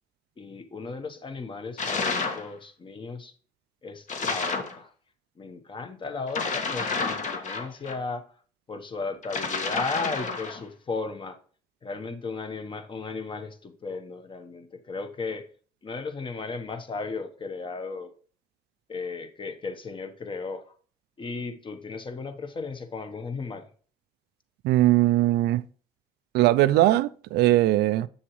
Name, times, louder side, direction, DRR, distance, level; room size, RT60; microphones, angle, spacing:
voice 1, 0.4-3.3 3.8-4.9 5.4-8.2 8.7-11.4 11.8-15.5 15.8-18.1 18.9-20.6 21.2-23.7, left 4 dB, 30° left, 1.1 m, -35 dB
sound 1, 1.8-2.5 4.1-4.8 6.3-8.0 9.2-10.6, left 4 dB, 45° left, 1.5 m, -30 dB
voice 2, 24.6-25.6 26.3-28.1, right 15 dB, 75° right, 0.4 m, -20 dB
7.1 x 7.0 x 3.1 m
cardioid pair, 110°, 17 cm